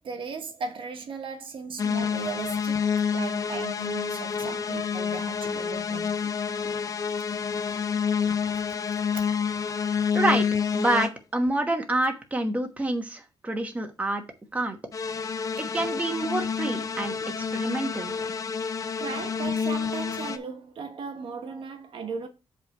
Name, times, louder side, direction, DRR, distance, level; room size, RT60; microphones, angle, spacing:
voice 1, 0.0-6.3 7.3-7.4 9.1-9.3 9.7-9.8 19.0-22.3, right 5 dB, 60° right, 1.1 m, -37 dB
sound 1, 1.8-11.1 14.9-20.4, left 6 dB, 35° left, 0.6 m, -28 dB
voice 2, 10.1-10.5 10.7-14.2 14.5-14.8 15.6-17.2 17.5-18.1, right 1 dB, 15° right, 1.2 m, -27 dB
8.1 x 3.4 x 6.0 m
wide cardioid pair, 165°, 10 cm